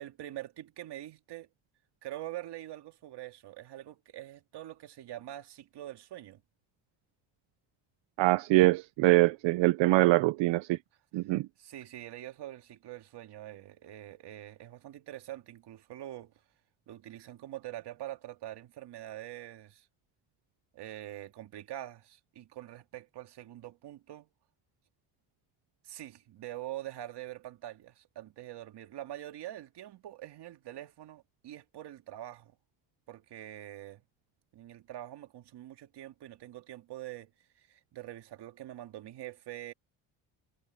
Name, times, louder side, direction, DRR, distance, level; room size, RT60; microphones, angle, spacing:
voice 1, 0.0-1.5 2.0-6.4 9.8-10.3 11.6-16.3 16.9-19.9 20.7-24.3 25.8-32.6 33.1-34.0 34.5-39.7, right 13 dB, 70° right, 2.2 m, -44 dB
voice 2, 8.2-10.8 11.1-11.5, right 19 dB, 90° right, 0.7 m, -24 dB
cardioid pair, 125°, 43 cm